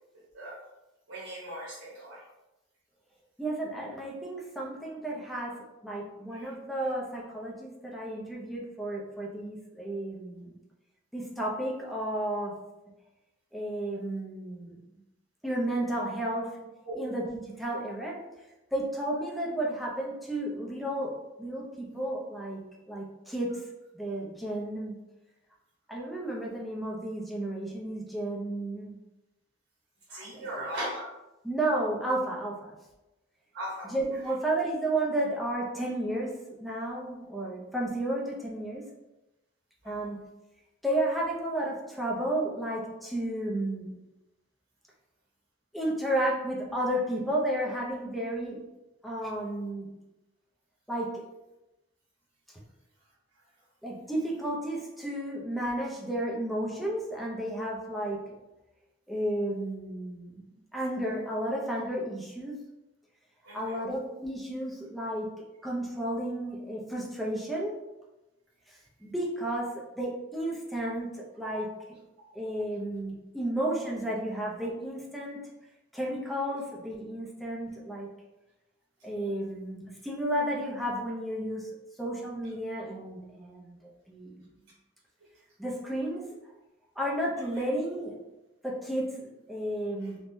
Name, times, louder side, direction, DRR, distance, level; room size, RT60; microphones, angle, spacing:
voice 1, 1.1-2.2 6.3-6.5 16.8-16.9 30.1-31.1 33.5-33.9 39.8-39.9 63.5-63.8, right 1 dB, 85° right, -6 dB, 0.9 m, -38 dB
voice 2, 3.4-10.6 11.1-12.6 13.5-14.8 15.4-16.6 17.0-18.2 18.7-22.6 22.9-23.6 23.9-24.9 25.9-29.0 30.1-30.6 31.4-32.7 33.8-36.3 36.6-38.9 39.8-40.2 40.8-43.9 45.7-48.6 49.0-49.9 50.9-51.2 53.8-58.2 59.1-60.4 60.7-62.6 63.5-65.3 65.6-67.8 68.7-71.7 72.3-75.5 75.9-78.1 79.0-81.7 82.0-83.8 84.1-84.4 85.6-86.3 87.0-88.2 88.6-90.2, right 1 dB, ahead, -3 dB, 0.4 m, -32 dB
3.5 x 2.1 x 2.5 m, 1.0 s
head